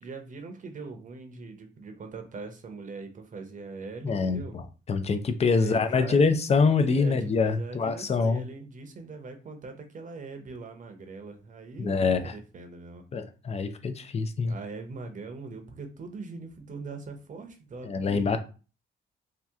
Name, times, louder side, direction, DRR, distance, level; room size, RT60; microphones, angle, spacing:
voice 1, 0.0-4.6 5.5-6.4 6.9-13.0 14.5-18.4, right 3 dB, 40° right, 0.8 m, -41 dB
voice 2, 4.0-4.6 4.9-8.4 11.8-12.3 13.1-14.5 17.8-18.4, left 4 dB, 30° left, 0.5 m, -25 dB
2.8 x 2.2 x 3.5 m
cardioid pair, 90°, 20 cm